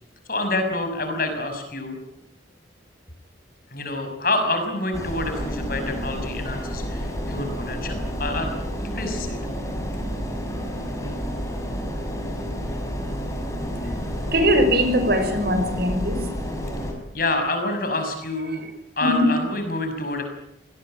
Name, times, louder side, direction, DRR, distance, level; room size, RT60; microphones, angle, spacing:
voice 1, 0.3-2.0 3.7-9.4 17.1-18.6 19.0-20.2, left 2 dB, 50° left, 6 dB, 6.0 m, -27 dB
sound 1, 4.9-16.9, equal, 15° left, 5.9 m, -30 dB
voice 2, 14.3-16.2 19.0-19.3, equal, 55° right, 8 dB, 5.9 m, -20 dB
26.5 x 19.5 x 8.9 m, 0.79 s
head